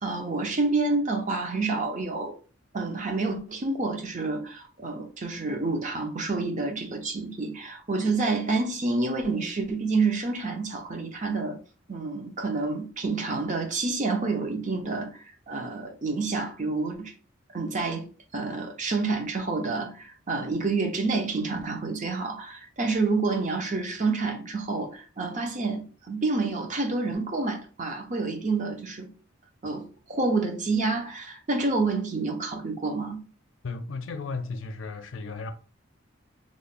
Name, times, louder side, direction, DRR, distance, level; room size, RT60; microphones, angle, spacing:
voice 1, 0.0-2.4 2.7-11.6 11.9-15.1 15.5-17.1 17.5-18.1 18.3-29.1 29.6-33.2, right 3 dB, 40° right, 0.7 m, -28 dB
voice 2, 33.6-35.5, left 4 dB, 75° left, 0.5 m, -34 dB
3.1 x 2.2 x 4.0 m
head